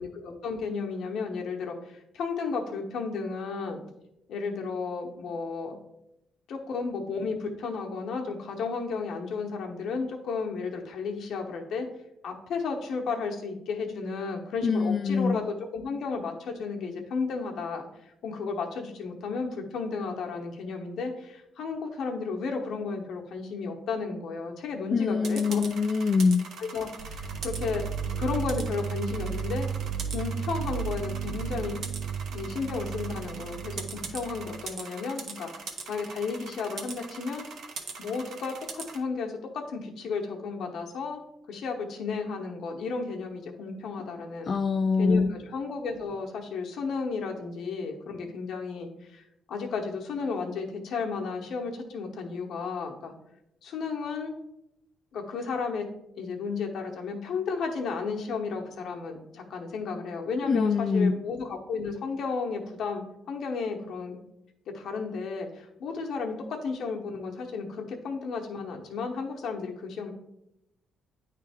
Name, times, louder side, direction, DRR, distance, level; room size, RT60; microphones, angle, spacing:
voice 1, 0.0-3.8 4.3-5.8 6.5-11.9 12.2-17.8 18.2-25.6 26.7-27.8 28.2-29.7 30.1-31.7 32.3-33.8 34.1-35.5 35.9-37.4 38.0-41.2 41.5-44.5 45.0-53.1 53.6-54.3 55.1-55.9 56.2-64.2 64.7-70.1, left 4 dB, 75° left, 2 dB, 1.0 m, -33 dB
voice 2, 14.6-15.4 24.9-26.5 44.5-45.3 60.4-61.2, left 4 dB, 45° left, 6 dB, 0.3 m, -24 dB
sound 1, 25.2-39.0, right 5 dB, 70° right, 0.9 m, -42 dB
sound 2, 27.0-34.7, right 6 dB, 85° right, 0.3 m, -34 dB
9.1 x 3.3 x 3.5 m, 0.84 s
cardioid pair, 90°, 0 cm